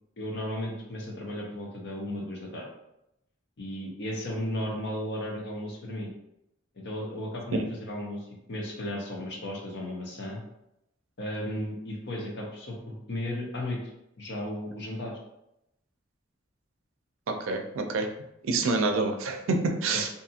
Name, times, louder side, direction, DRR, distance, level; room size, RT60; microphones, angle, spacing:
voice 1, 0.2-2.7 3.6-6.1 6.7-10.4 11.2-13.8 14.2-15.1 19.9-20.1, left 1 dB, 60° left, -1 dB, 0.7 m, -35 dB
voice 2, 17.3-18.1 18.4-20.1, right 3 dB, 90° right, 5 dB, 0.4 m, -27 dB
2.6 x 2.4 x 2.7 m, 0.83 s
head